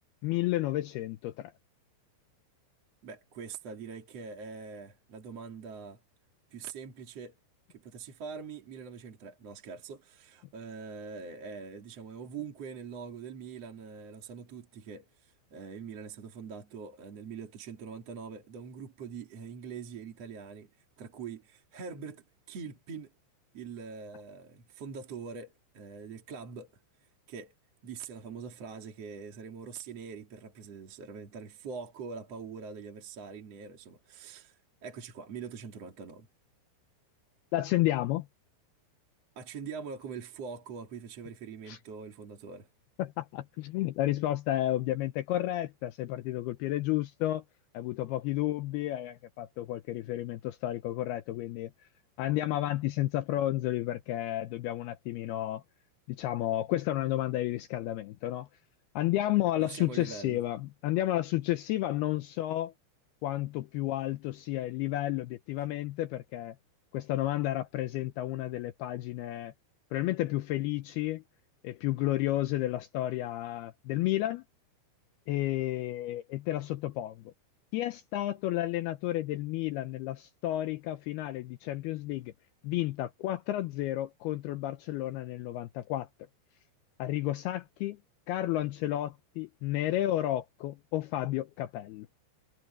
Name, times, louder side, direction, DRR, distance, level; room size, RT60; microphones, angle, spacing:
voice 1, 0.2-1.5 37.5-38.3 41.7-41.8 43.0-47.4 47.7-51.7 52.2-55.6 56.1-58.5 59.0-62.7 63.2-66.6 66.9-69.5 69.9-71.2 71.6-74.4 75.3-77.3 77.7-82.3 82.6-86.1 87.0-88.0 88.3-92.1, left 15 dB, 80° left, 2.4 m, -31 dB
voice 2, 3.0-6.0 6.5-7.3 7.7-20.7 21.0-23.1 23.5-26.7 27.0-27.5 27.8-36.3 39.4-42.7 59.6-60.4 65.6-65.7, right 5 dB, 40° right, 3.0 m, -43 dB
omnidirectional pair, 5.2 m